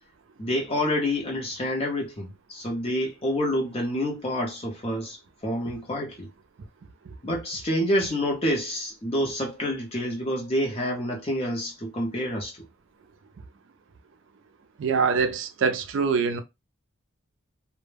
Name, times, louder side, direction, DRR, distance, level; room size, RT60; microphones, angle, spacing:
voice 1, 0.4-6.3 7.2-12.5, equal, 25° left, 0.7 m, -28 dB
voice 2, 14.8-16.4, right 5 dB, 60° right, 0.4 m, -24 dB
2.1 x 2.0 x 3.2 m
head